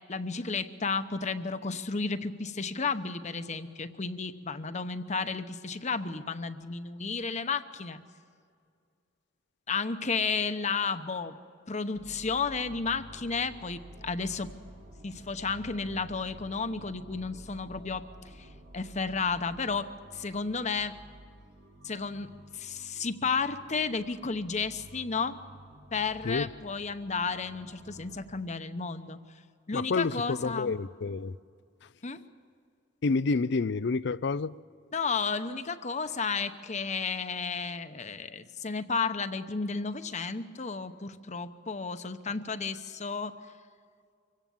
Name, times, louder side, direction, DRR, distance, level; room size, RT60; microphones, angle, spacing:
voice 1, 0.1-8.0 9.7-11.4 11.7-14.5 15.0-18.0 18.4-18.5 18.7-20.9 21.8-22.3 22.5-25.4 25.9-29.2 29.7-30.8 32.0-32.2 34.9-43.3, left 4 dB, 40° left, 1.0 m, -32 dB
sound 1, 11.9-28.4, right 1 dB, 60° right, 2.6 m, -51 dB
voice 2, 29.7-31.3 33.0-34.5, left 4 dB, 65° left, 0.5 m, -29 dB
25.0 x 17.0 x 7.2 m
head